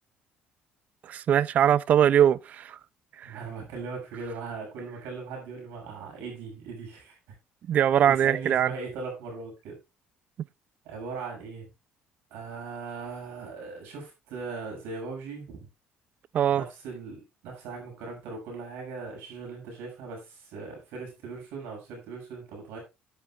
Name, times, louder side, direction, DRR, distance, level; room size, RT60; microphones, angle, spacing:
voice 1, 1.0-2.8 3.2-3.4 7.7-8.7 16.3-16.6, right 10 dB, 45° right, 0.5 m, -22 dB
voice 2, 3.2-7.2 8.0-9.7 10.8-11.7 12.3-15.7 16.5-22.8, right 4 dB, 90° right, 7.3 m, -39 dB
13.0 x 11.0 x 2.4 m
cardioid pair, 150°, 4 cm